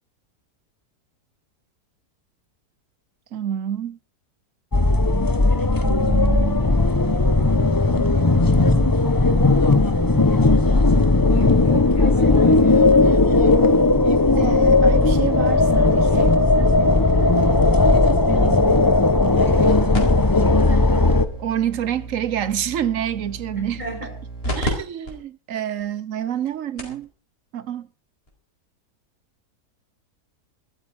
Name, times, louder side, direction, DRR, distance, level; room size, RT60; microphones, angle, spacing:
voice 1, 3.3-4.0 5.8-6.7 8.0-8.6 14.3-16.4 18.3-18.9 21.4-23.8 24.6-27.1 27.5-27.9, right 10 dB, 60° right, 1.1 m, -28 dB
sound 1, 4.7-21.3, left 2 dB, 20° left, 0.6 m, -17 dB
voice 2, 11.3-13.6 23.5-24.1 24.5-24.6, right 1 dB, 25° right, 6.5 m, -34 dB
sound 2, 19.9-24.7 25.1-25.2 25.8-25.9 26.5-26.6 26.8-27.0 28.3-28.4, right 1 dB, 35° left, 4.6 m, -32 dB
13.5 x 13.5 x 5.4 m
omnidirectional pair, 1.7 m